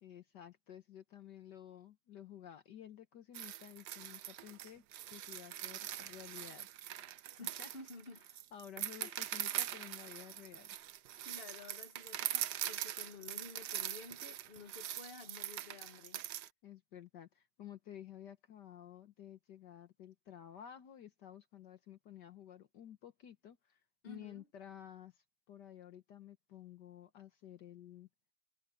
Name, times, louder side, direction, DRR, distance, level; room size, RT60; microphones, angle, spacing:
voice 1, 0.0-6.7 7.4-7.7 8.5-10.8 16.6-28.1, left 10 dB, 65° left, 1.6 m, -53 dB
sound 1, 3.3-16.5, right 12 dB, 65° right, 1.2 m, -42 dB
voice 2, 7.4-8.2 9.0-9.2 11.2-16.3 24.0-24.5, left 4 dB, 30° left, 1.4 m, -52 dB
omnidirectional pair, 2.2 m